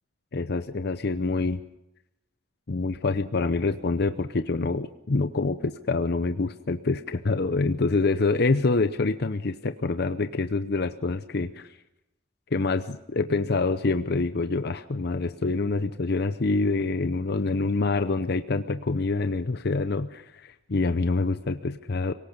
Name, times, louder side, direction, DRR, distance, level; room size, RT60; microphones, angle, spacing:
voice 1, 0.3-1.6 2.7-11.7 12.5-22.1, left 3 dB, 55° left, 10 dB, 0.7 m, -26 dB
25.0 x 17.5 x 6.7 m, 0.90 s
head